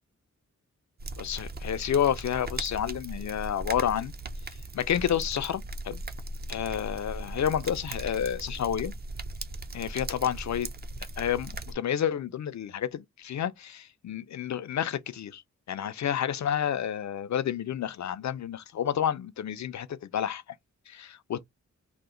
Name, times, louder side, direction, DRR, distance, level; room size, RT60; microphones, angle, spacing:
sound 1, 1.0-11.7, right 2 dB, 35° right, 0.5 m, -38 dB
voice 1, 1.2-4.1 4.7-6.0 6.5-8.9 9.7-10.7 11.2-15.4 15.7-20.4 20.9-21.4, left 9 dB, 70° left, 0.5 m, -30 dB
2.9 x 2.1 x 3.7 m
wide cardioid pair, 130°, 30 cm